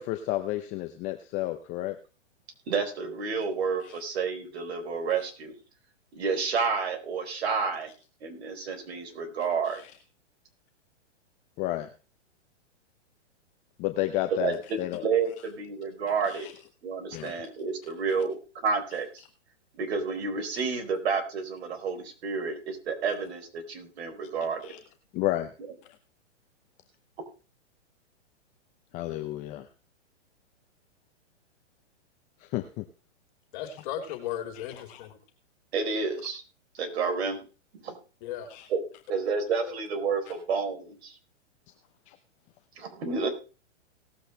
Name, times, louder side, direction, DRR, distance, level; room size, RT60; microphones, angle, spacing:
voice 1, 0.0-2.0 3.8-4.0 9.7-9.9 11.6-11.9 13.8-15.0 16.2-16.5 17.1-17.4 24.6-24.8 25.1-25.5 28.9-29.7 32.4-32.9 34.6-34.7 34.9-35.0 38.5-38.7 42.1-42.2, left 15 dB, 20° left, 8 dB, 0.7 m, -31 dB
voice 2, 2.7-5.5 6.1-7.9 8.2-9.8 14.3-14.5 15.0-16.5 16.8-19.2 19.7-24.7 35.7-36.4 36.7-37.4 37.7-37.9 38.7-38.8 39.1-41.2 42.8-43.3, right 5 dB, 60° right, 4 dB, 4.2 m, -30 dB
voice 3, 33.5-35.1 38.2-38.5 39.6-39.8, left 10 dB, 40° left, 5 dB, 3.6 m, -36 dB
18.5 x 8.2 x 3.3 m, 0.34 s
hypercardioid pair, 150°, 36 cm